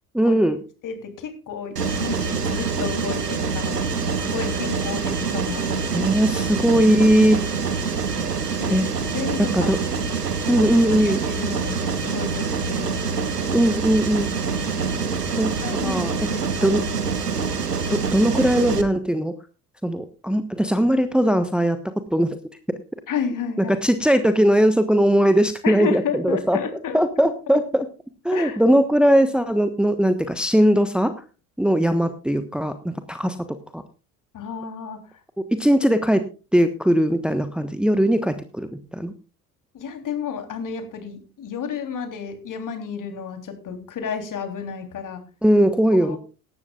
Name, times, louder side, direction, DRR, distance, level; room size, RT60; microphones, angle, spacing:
voice 1, 0.1-0.6 5.9-7.4 8.7-8.8 9.4-9.8 10.5-11.2 13.5-14.3 15.4-15.6 15.8-16.1 16.6-16.9 17.9-19.3 19.8-21.8 22.1-22.4 23.7-26.6 26.9-27.9 28.2-31.1 31.6-33.8 35.5-36.2 36.5-39.1 45.4-46.2, equal, ahead, 9 dB, 1.3 m, -19 dB
voice 2, 0.8-3.8 4.2-5.7 8.6-8.9 9.1-9.7 10.5-12.9 15.6-16.8 23.1-23.8 25.6-27.0 27.5-27.6 28.3-28.6 34.3-35.0 39.7-45.2 46.0-46.2, left 6 dB, 40° left, 7 dB, 3.6 m, -31 dB
Mechanisms, 1.8-18.8, right 5 dB, 90° right, 1.3 m, -25 dB
18.0 x 13.0 x 2.4 m, 0.32 s
figure-of-eight pair, 60°, 46 cm